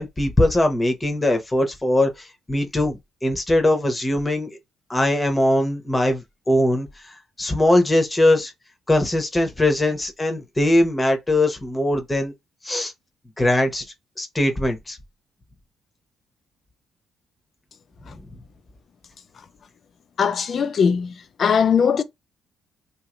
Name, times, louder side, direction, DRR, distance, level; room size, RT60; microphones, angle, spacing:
voice 1, 0.0-4.5 4.9-8.5 8.9-12.3 12.6-12.9 13.4-13.8 14.2-15.0, left 1 dB, 20° left, 0.9 m, -21 dB
voice 2, 20.2-21.1 21.4-22.0, left 6 dB, 50° left, 0.4 m, -19 dB
3.0 x 2.6 x 2.5 m
cardioid pair, 90°, 0 cm